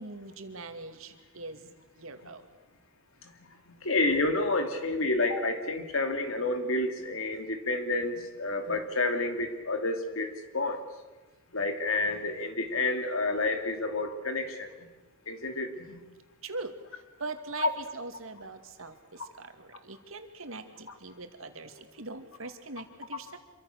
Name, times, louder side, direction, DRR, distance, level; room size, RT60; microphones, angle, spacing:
voice 1, 0.0-1.6 2.0-2.4 16.4-16.7 17.2-23.4, right 3 dB, 80° right, 7 dB, 2.4 m, -42 dB
voice 2, 3.7-10.8 11.5-14.7 15.3-16.0 17.6-17.7, left 2 dB, 80° left, 6 dB, 2.8 m, -29 dB
26.5 x 24.0 x 6.7 m, 1.2 s
head